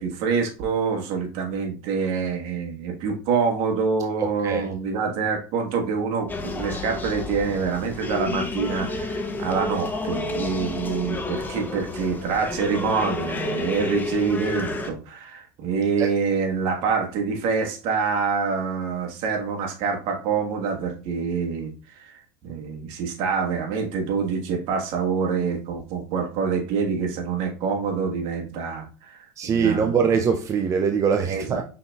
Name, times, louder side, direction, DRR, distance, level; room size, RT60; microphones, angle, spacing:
voice 1, 0.0-30.0 31.3-31.6, right 5 dB, 60° right, 2 dB, 1.4 m, -26 dB
voice 2, 4.2-4.7 16.0-16.1 29.4-31.6, right 6 dB, 30° right, 6 dB, 0.5 m, -22 dB
sound 1, 6.3-14.9, left 2 dB, 15° left, 0.7 m, -30 dB
5.6 x 4.0 x 2.4 m, 0.36 s
supercardioid pair, 105°, 10 cm